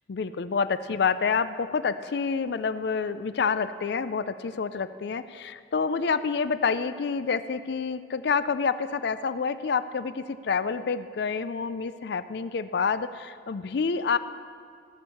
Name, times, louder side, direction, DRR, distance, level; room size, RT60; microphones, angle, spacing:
voice 1, 0.1-14.2, left 5 dB, 65° left, 13 dB, 0.4 m, -28 dB
15.0 x 6.4 x 7.1 m, 2.3 s
head